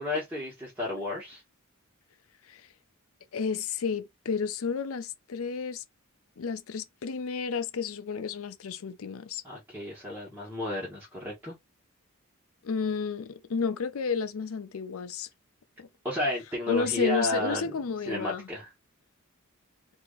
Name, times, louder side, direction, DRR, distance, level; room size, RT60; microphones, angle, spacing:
voice 1, 0.0-1.4 9.4-11.5 16.0-17.7 18.1-18.7, left 1 dB, 10° right, 1.2 m, -32 dB
voice 2, 3.3-5.8 6.4-9.4 12.6-15.3 15.8-15.9 16.7-18.5, left 5 dB, 75° left, 0.5 m, -31 dB
2.9 x 2.6 x 3.8 m
head